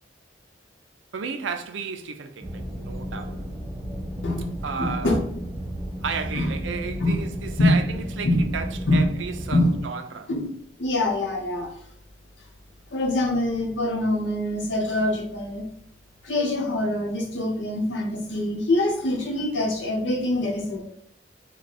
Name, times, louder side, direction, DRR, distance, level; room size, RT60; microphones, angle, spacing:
voice 1, 1.1-3.5 4.6-5.2 6.0-10.3, right 5 dB, 90° right, 0.4 m, -33 dB
sound 1, 2.4-9.8, equal, 5° right, 1.0 m, -33 dB
voice 2, 4.8-5.2 6.3-6.5 7.0-7.1 7.6-7.8 8.2-8.5 8.9-9.1 9.5-9.7 10.3-10.5 10.8-11.7 12.9-15.7 16.2-20.8, left 1 dB, 85° left, 0.9 m, -24 dB
3.2 x 2.2 x 4.1 m
head